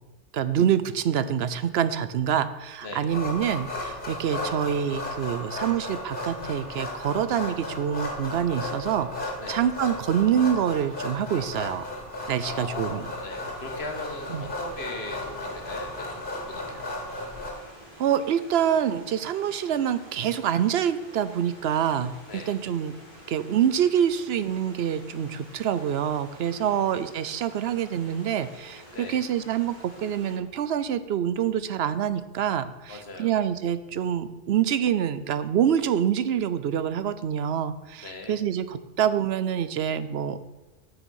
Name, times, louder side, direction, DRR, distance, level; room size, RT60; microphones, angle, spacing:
voice 1, 0.3-11.9 12.3-13.0 14.3-14.5 18.0-22.9 23.3-40.4, right 9 dB, 75° right, 14 dB, 0.9 m, -26 dB
sound 1, 3.1-17.5, left 1 dB, 55° left, 2.5 m, -35 dB
Stream / Liquid, 11.4-30.4, equal, 25° right, 4.4 m, -50 dB
voice 2, 12.4-16.9 22.3-22.5 26.5-26.9 28.9-29.2 32.9-33.4 38.0-38.4, left 2 dB, 80° left, 4 dB, 1.8 m, -39 dB
9.1 x 6.8 x 6.3 m, 1.1 s
omnidirectional pair, 1.1 m